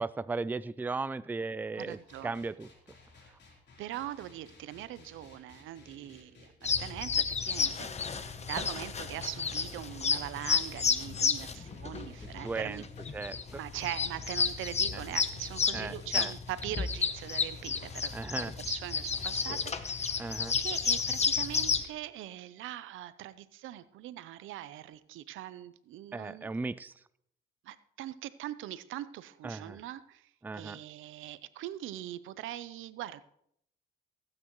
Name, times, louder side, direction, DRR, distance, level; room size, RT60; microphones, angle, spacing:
voice 1, 0.0-2.7 12.4-12.8 13.1-13.6 15.7-16.3 18.1-18.5 20.2-20.5 26.1-26.9 29.4-29.8 30.4-30.8, right 3 dB, 10° right, 16 dB, 0.3 m, -36 dB
voice 2, 1.8-2.3 3.8-8.2 8.5-12.9 13.5-18.1 18.4-26.5 27.6-33.2, right 13 dB, 85° right, 15 dB, 0.6 m, -42 dB
sound 1, 1.9-21.9, left 3 dB, 60° left, 3.6 m, -57 dB
sound 2, 6.6-21.8, left 5 dB, 35° left, 0.9 m, -31 dB
17.0 x 8.8 x 3.1 m, 0.71 s
cardioid pair, 90°, 20 cm